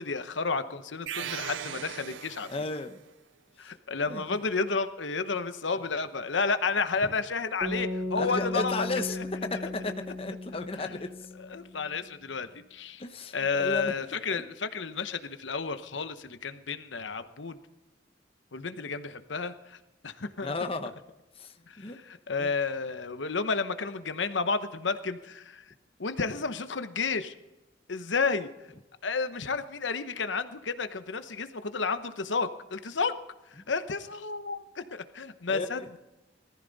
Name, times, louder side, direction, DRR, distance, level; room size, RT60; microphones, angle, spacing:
voice 1, 0.0-2.5 3.6-9.2 10.8-11.0 11.4-13.0 13.3-17.6 18.5-19.8 20.0-20.5 21.7-25.7 26.0-27.3 27.9-28.5 29.0-33.1 33.5-36.0, left 4 dB, 80° left, 10 dB, 0.9 m, -31 dB
sound 1, 1.1-3.0, right 9 dB, 80° right, 0.5 m, -38 dB
voice 2, 2.5-3.0 4.1-4.4 8.1-11.3 13.0-13.9 14.3-14.4 20.4-20.9 21.4-22.0 22.4-22.5 35.5-35.7, left 3 dB, 30° left, 7 dB, 0.8 m, -34 dB
sound 2, 7.6-11.8, left 1 dB, 10° right, 3.1 m, -36 dB
19.5 x 14.5 x 4.0 m, 1.0 s
head